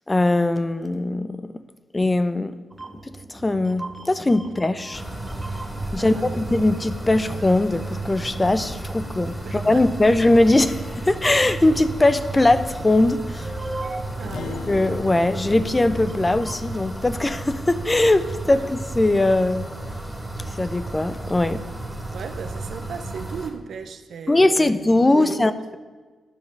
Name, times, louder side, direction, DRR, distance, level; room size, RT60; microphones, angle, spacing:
voice 1, 0.1-1.6 1.9-2.6 3.0-5.0 5.9-13.5 14.7-19.7 20.5-21.6 24.3-25.8, left 2 dB, 25° left, 0.6 m, -20 dB
sound 1, 2.7-16.7, right 2 dB, 25° right, 1.0 m, -41 dB
sound 2, 4.9-23.5, right 2 dB, ahead, 2.2 m, -33 dB
voice 2, 6.0-6.5 9.4-9.9 14.2-14.7 18.4-18.7 22.1-25.8, right 6 dB, 75° right, 0.7 m, -36 dB
Acoustic guitar, 14.3-19.0, left 6 dB, 70° left, 0.5 m, -40 dB
10.0 x 5.1 x 6.4 m
cardioid pair, 60°, 0 cm